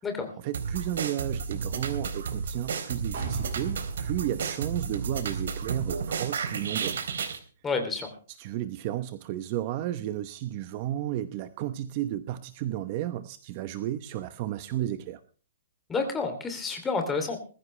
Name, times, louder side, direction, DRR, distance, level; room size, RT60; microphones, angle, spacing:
voice 1, 0.4-7.0 8.4-15.2, right 12 dB, 30° right, 12 dB, 0.9 m, -33 dB
sound 1, 0.5-7.4, right 6 dB, 70° right, 3.5 m, -32 dB
sound 2, 3.1-6.9 7.2-7.3, right 4 dB, 50° right, 7.4 m, -41 dB
voice 2, 7.6-8.1 15.9-17.4, left 4 dB, 10° left, 5 dB, 2.9 m, -29 dB
20.5 x 15.0 x 3.3 m, 0.39 s
hypercardioid pair, 165°, 0 cm